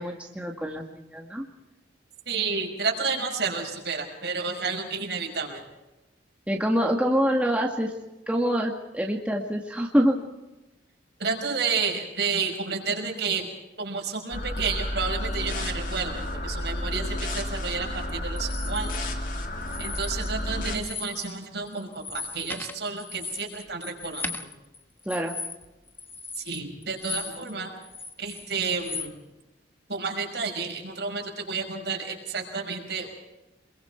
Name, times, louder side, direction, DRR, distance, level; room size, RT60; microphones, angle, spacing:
voice 1, 0.0-1.4 6.5-7.9 8.3-10.2 25.1-25.3, equal, 5° right, 0 dB, 2.0 m, -25 dB
voice 2, 2.3-5.6 11.2-13.5 13.8-19.1 19.8-24.5 26.4-27.7 28.2-29.1 29.9-33.1, right 5 dB, 65° right, 2 dB, 5.7 m, -31 dB
sound 1, 14.3-20.7, left 1 dB, 45° left, 3.0 m, -31 dB
sound 2, 18.4-19.0 19.6-20.4 20.7-21.4 21.7-27.5 27.8-29.1, left 4 dB, 10° left, 1.1 m, -37 dB
27.5 x 22.5 x 4.6 m, 1.0 s
head